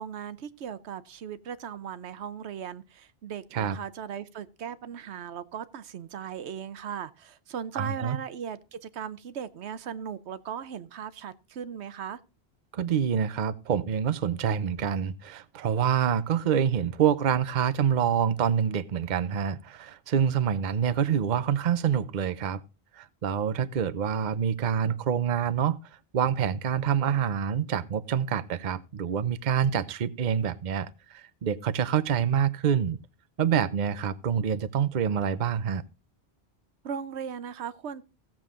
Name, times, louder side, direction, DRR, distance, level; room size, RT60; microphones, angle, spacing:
voice 1, 0.0-12.2 36.8-38.0, right 8 dB, 85° right, 1.0 m, -38 dB
voice 2, 7.7-8.2 12.7-22.6 22.9-25.8 26.1-33.0 33.4-35.8, right 8 dB, 50° right, 0.7 m, -26 dB
16.0 x 7.4 x 3.7 m
omnidirectional pair, 1.1 m